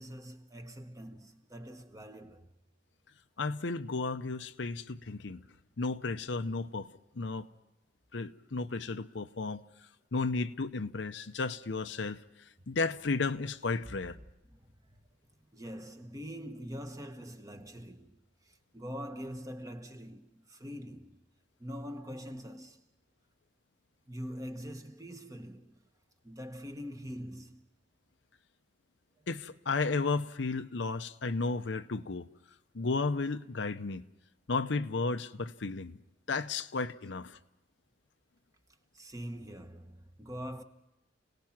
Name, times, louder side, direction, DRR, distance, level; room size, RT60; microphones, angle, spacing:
voice 1, 0.0-2.5 13.9-14.1 14.5-15.0 15.5-21.2 21.6-22.8 24.1-25.8 26.2-27.7 29.2-29.3 38.9-40.6, equal, 20° right, 1.1 m, -44 dB
voice 2, 3.4-5.4 5.8-6.9 7.2-7.5 8.1-9.6 10.1-12.2 12.7-14.2 29.3-32.3 32.7-34.1 34.5-36.0 36.3-37.4, left 3 dB, 65° left, 0.7 m, -33 dB
29.5 x 18.5 x 6.0 m
head